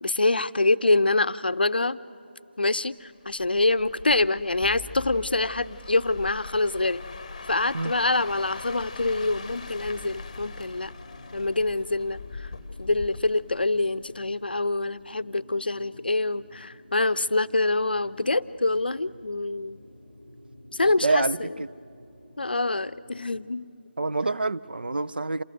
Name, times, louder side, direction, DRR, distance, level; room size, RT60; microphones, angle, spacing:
voice 1, 0.0-2.0 2.6-7.0 7.5-10.9 11.3-12.5 12.8-19.8 20.7-21.5 22.4-23.7, left 2 dB, 60° left, 0.6 m, -25 dB
sound 1, 3.2-14.3 14.7-15.0, left 4 dB, 30° left, 1.0 m, -42 dB
sound 2, 4.6-6.8, left 6 dB, 5° right, 1.3 m, -45 dB
sound 3, 9.1-23.4, equal, 80° right, 3.5 m, -51 dB
voice 2, 21.0-21.7 24.0-25.4, right 3 dB, 60° right, 0.5 m, -26 dB
27.5 x 17.5 x 7.7 m
figure-of-eight pair, 160°, 6 cm